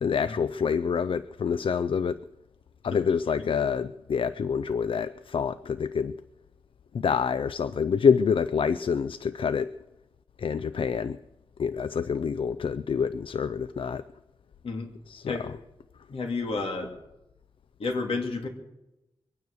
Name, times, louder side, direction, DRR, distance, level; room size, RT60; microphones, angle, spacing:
voice 1, 0.0-2.2 2.8-6.2 6.9-9.7 10.4-11.2 11.6-14.0 15.1-15.5, left 6 dB, 65° left, 14 dB, 0.4 m, -27 dB
voice 2, 16.1-16.9 17.8-18.5, left 3 dB, 85° left, 3 dB, 2.6 m, -31 dB
23.0 x 9.6 x 6.5 m, 0.97 s
wide cardioid pair, 110°, 10 cm